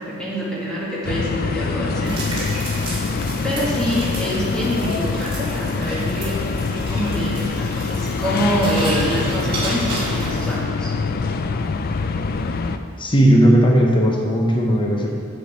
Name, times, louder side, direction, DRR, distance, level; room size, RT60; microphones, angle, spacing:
voice 1, 0.0-2.3 3.4-6.4 6.9-10.9, equal, 5° left, -7 dB, 1.8 m, -25 dB
sound 1, 1.0-12.8, left 4 dB, 45° left, 0.3 m, -24 dB
sound 2, 2.0-10.5, right 1 dB, 25° right, 1.9 m, -33 dB
voice 2, 13.0-15.1, equal, 25° left, 0 dB, 0.8 m, -16 dB
7.8 x 7.1 x 4.2 m, 2.3 s
head